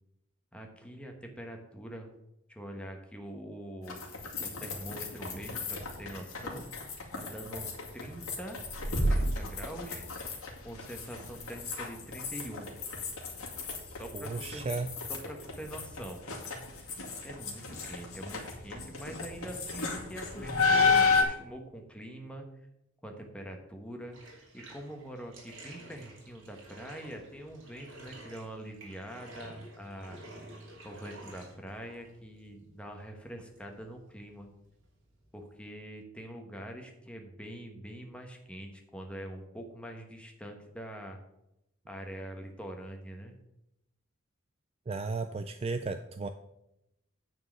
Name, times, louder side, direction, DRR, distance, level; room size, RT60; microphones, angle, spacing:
voice 1, 0.5-2.1 2.5-4.0 4.4-6.6 7.1-7.7 7.9-8.6 9.1-10.0 10.6-12.7 13.8-14.8 15.1-16.2 17.2-22.5 23.0-24.2 24.5-30.2 30.8-34.5 35.3-41.2 41.9-43.3, right 1 dB, 5° left, 3 dB, 1.2 m, -44 dB
sound 1, 3.8-21.2, left 3 dB, 85° left, 2.3 m, -33 dB
voice 2, 14.1-14.9 44.9-46.3, right 3 dB, 25° right, 9 dB, 0.3 m, -34 dB
Bathtub (filling or washing), 24.1-35.7, right 1 dB, 60° right, 3.0 m, -51 dB
9.5 x 4.5 x 7.4 m, 0.85 s
head